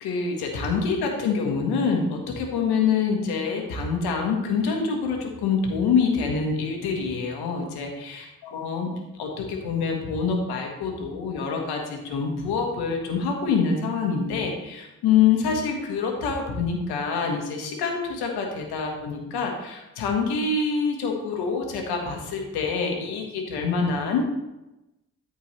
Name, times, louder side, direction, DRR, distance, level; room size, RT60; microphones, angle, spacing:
voice 1, 0.0-8.2 8.5-8.9 9.2-24.3, left 5 dB, 90° left, 2 dB, 1.4 m, -26 dB
13.5 x 4.5 x 3.2 m, 0.97 s
supercardioid pair, 45°, 37 cm